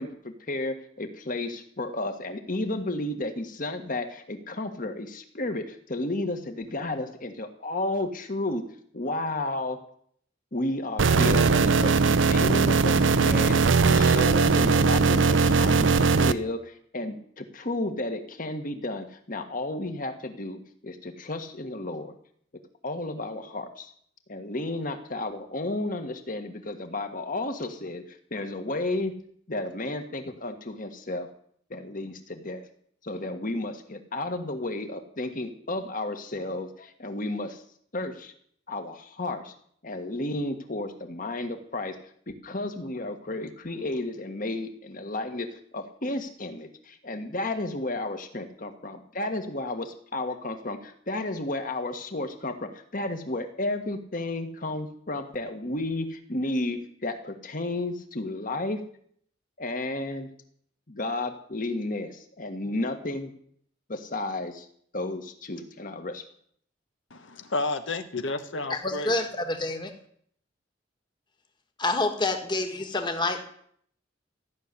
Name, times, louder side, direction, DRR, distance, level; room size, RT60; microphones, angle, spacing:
voice 1, 0.0-8.6 8.9-9.8 10.5-22.1 22.8-23.9 24.3-29.1 29.5-31.3 31.7-32.6 33.0-37.6 37.9-38.3 38.7-39.5 39.8-42.0 42.3-58.8 59.6-60.3 60.9-63.3 63.9-64.7 64.9-66.2, left 2 dB, 45° left, 7 dB, 1.7 m, -32 dB
sound 1, 11.0-16.3, right 4 dB, 90° right, 0.7 m, -20 dB
voice 2, 67.1-69.1, left 3 dB, 85° left, 7 dB, 1.3 m, -31 dB
voice 3, 68.7-69.9 71.8-73.4, left 2 dB, 25° left, 5 dB, 1.6 m, -27 dB
15.0 x 6.6 x 9.8 m, 0.63 s
head